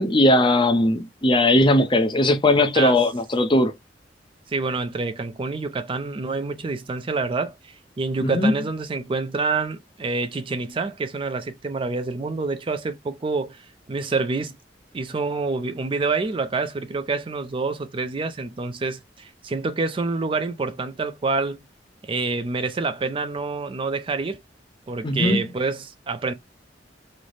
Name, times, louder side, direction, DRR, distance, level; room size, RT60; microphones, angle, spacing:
voice 1, 0.0-3.7 8.2-8.5 25.0-25.5, left 1 dB, 25° left, 0.6 m, -19 dB
voice 2, 4.5-14.5 14.9-21.6 22.0-24.4 24.9-26.3, right 3 dB, 30° right, 0.4 m, -27 dB
3.2 x 2.0 x 3.9 m
head